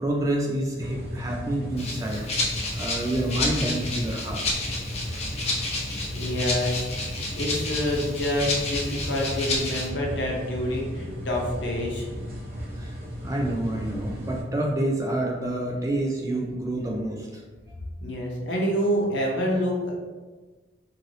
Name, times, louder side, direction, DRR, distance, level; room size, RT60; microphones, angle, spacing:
voice 1, 0.0-2.2 2.7-4.4 12.8-17.4, right 1 dB, 20° right, 0 dB, 0.3 m, -28 dB
sound 1, 0.8-14.4, equal, 50° right, 0.9 m, -35 dB
Rattle (instrument), 1.8-9.9, left 2 dB, 35° left, 0.5 m, -30 dB
voice 2, 6.1-6.9 7.3-12.1 18.0-20.0, equal, 75° left, -2 dB, 0.7 m, -27 dB
2.6 x 2.6 x 3.1 m, 1.3 s
head